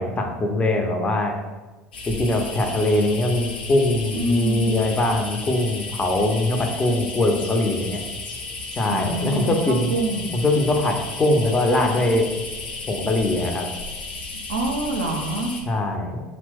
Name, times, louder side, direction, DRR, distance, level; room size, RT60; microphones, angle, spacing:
voice 1, 0.0-1.3 2.1-8.0 8.8-10.0 10.3-12.3 12.9-13.7 15.7-16.2, left 2 dB, 25° left, 3 dB, 0.5 m, -22 dB
sound 1, 1.9-15.6, left 3 dB, 75° left, 0.5 m, -34 dB
voice 2, 4.1-4.8 8.9-10.3 14.5-15.5, right 1 dB, 80° right, 2 dB, 0.4 m, -26 dB
2.8 x 2.0 x 3.3 m, 1.2 s
hypercardioid pair, 70°, 5 cm